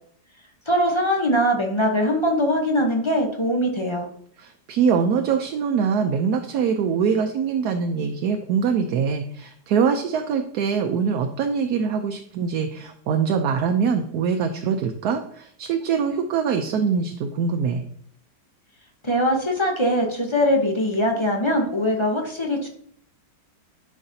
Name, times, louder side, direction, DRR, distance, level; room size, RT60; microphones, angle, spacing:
voice 1, 0.7-4.1 19.0-22.7, equal, 25° left, 1 dB, 0.6 m, -22 dB
voice 2, 4.4-17.8, right 6 dB, 70° right, 5 dB, 1.0 m, -23 dB
10.5 x 4.8 x 2.7 m, 0.65 s
omnidirectional pair, 2.0 m